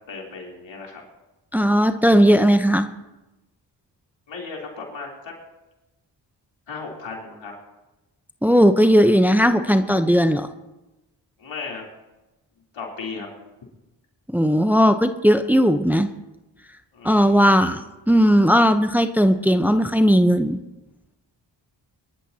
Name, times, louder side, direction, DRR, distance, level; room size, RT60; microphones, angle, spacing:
voice 1, 0.1-1.0 4.3-5.3 6.7-7.5 11.4-11.8 12.7-13.3 16.9-17.8, left 4 dB, 75° left, -1 dB, 3.5 m, -36 dB
voice 2, 1.5-2.9 8.4-10.5 14.3-16.1 17.0-17.8 18.1-20.6, equal, 5° right, 8 dB, 0.8 m, -17 dB
23.0 x 13.0 x 2.9 m, 1.0 s
supercardioid pair, 45°, 45 cm